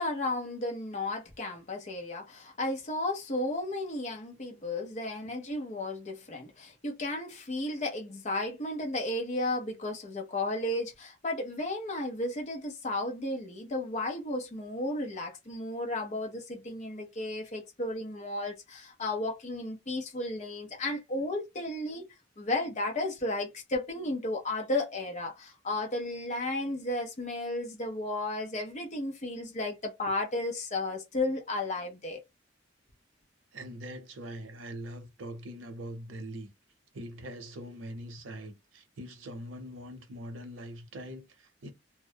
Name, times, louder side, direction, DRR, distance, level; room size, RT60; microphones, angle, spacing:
voice 1, 0.0-22.1 22.4-32.2, left 2 dB, 40° left, 0.6 m, -33 dB
voice 2, 33.5-36.5 36.9-41.7, equal, 85° right, 0.7 m, -42 dB
2.2 x 2.0 x 2.7 m
head